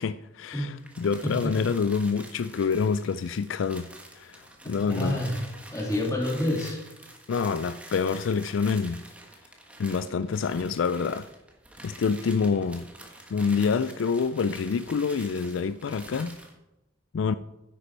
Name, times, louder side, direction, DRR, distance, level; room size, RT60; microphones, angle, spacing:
voice 1, 0.0-3.9 4.2-5.2 7.3-9.0 9.8-11.3 11.8-12.9 13.3-16.4 17.1-17.3, left 5 dB, 75° left, 0.4 m, -27 dB
sound 1, 0.8-16.6, right 1 dB, 5° right, 1.4 m, -47 dB
voice 2, 4.6-5.4 5.7-6.8, left 1 dB, 15° left, 2.4 m, -28 dB
10.0 x 8.4 x 4.6 m
head